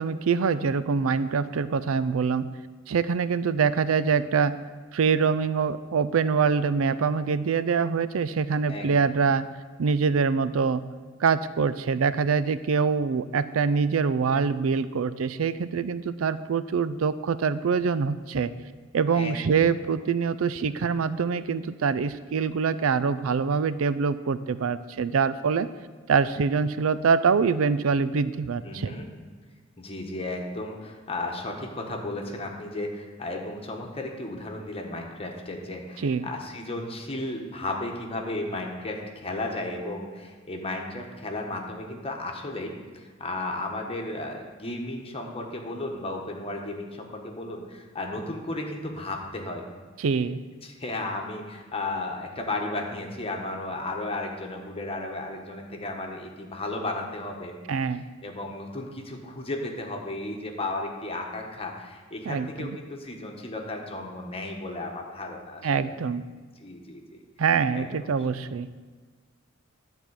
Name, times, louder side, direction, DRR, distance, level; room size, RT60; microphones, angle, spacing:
voice 1, 0.0-2.5 2.9-4.6 4.9-9.5 9.8-10.8 11.2-18.5 18.9-25.7 26.1-28.9 36.0-36.3 50.0-50.4 57.7-58.0 62.3-62.8 65.6-66.2 67.4-68.7, right 5 dB, 85° right, 15 dB, 0.4 m, -24 dB
voice 2, 8.7-9.1 19.1-20.0 28.6-29.1 29.8-49.7 50.6-57.5 58.2-65.7 66.6-67.2 67.7-67.9, left 2 dB, 30° left, 1 dB, 1.4 m, -34 dB
11.5 x 4.4 x 8.2 m, 1.4 s
head